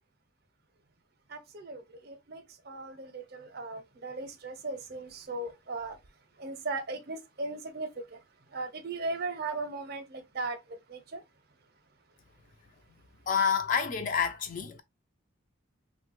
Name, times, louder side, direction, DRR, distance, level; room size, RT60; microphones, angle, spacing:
voice 1, 1.3-6.0 6.4-11.2, right 3 dB, 50° right, 0.5 m, -38 dB
voice 2, 13.3-14.8, left 6 dB, 40° left, 0.3 m, -28 dB
3.1 x 2.1 x 3.0 m
head